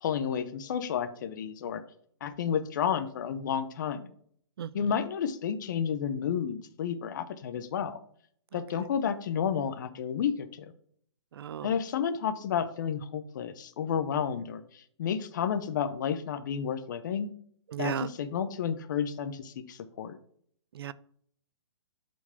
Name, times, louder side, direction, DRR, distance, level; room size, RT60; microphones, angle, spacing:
voice 1, 0.0-1.8 2.2-4.1 4.7-8.0 8.5-10.7 11.6-17.3 17.8-20.2, left 7 dB, 40° left, 11 dB, 0.7 m, -31 dB
voice 2, 11.4-11.7 17.7-18.1 20.8-20.9, right 9 dB, 55° right, 18 dB, 0.4 m, -34 dB
7.1 x 4.5 x 5.7 m, 0.63 s
hypercardioid pair, 165°, 15 cm